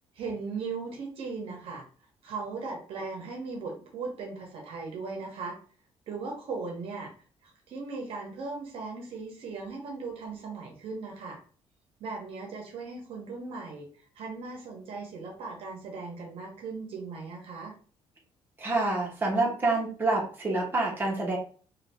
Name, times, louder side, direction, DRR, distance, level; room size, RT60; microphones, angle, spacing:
voice 1, 0.1-1.8 2.2-5.6 6.1-7.1 7.4-11.4 12.0-17.7, right 4 dB, 55° right, 0 dB, 0.8 m, -38 dB
voice 2, 18.6-21.4, right 2 dB, 20° right, -3 dB, 0.9 m, -27 dB
2.6 x 2.3 x 3.3 m, 0.42 s
cardioid pair, 175°, 11 cm